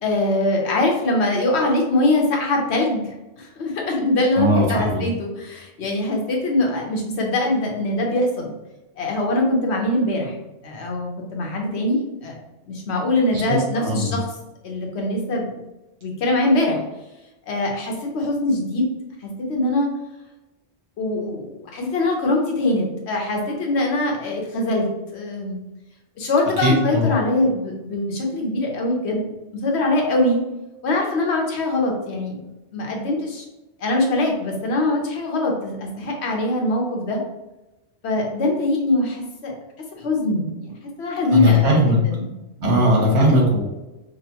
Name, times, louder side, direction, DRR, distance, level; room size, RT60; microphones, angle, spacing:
voice 1, 0.0-8.5 9.0-10.4 10.6-12.3 12.7-14.3 14.6-15.5 16.0-16.8 17.5-18.9 19.2-19.9 21.0-25.6 26.2-29.3 29.6-30.4 30.8-32.4 32.7-33.5 33.8-37.2 38.0-39.5 39.9-42.3 42.6-42.9, left 2 dB, 75° left, 0 dB, 1.0 m, -22 dB
voice 2, 4.4-5.0 13.3-14.1 26.6-27.0 41.3-42.0 42.6-43.6, equal, 85° right, -2 dB, 1.3 m, -18 dB
5.1 x 2.0 x 2.8 m, 1.0 s
omnidirectional pair, 1.1 m